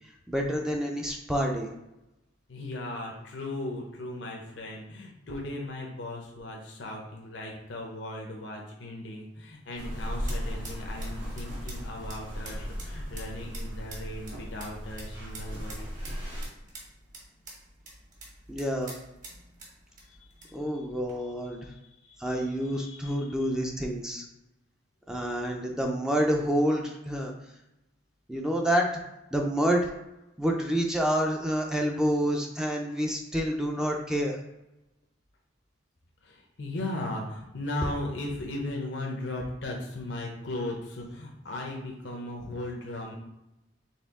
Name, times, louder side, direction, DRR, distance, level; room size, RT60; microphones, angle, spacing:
voice 1, 0.3-1.7 18.5-19.0 20.5-21.7 22.2-24.2 25.1-27.3 28.3-28.9 29.3-29.9 30.4-34.4, equal, 5° right, 1 dB, 0.4 m, -28 dB
voice 2, 2.5-15.9 20.1-20.3 21.2-21.3 21.7-23.5 36.2-43.2, left 1 dB, 70° left, -1 dB, 0.7 m, -37 dB
sound 1, 9.5-21.1, right 2 dB, 45° right, 1.4 m, -49 dB
sound 2, 9.8-16.5, equal, 80° right, 1.6 m, -36 dB
4.3 x 3.2 x 3.6 m, 0.91 s
head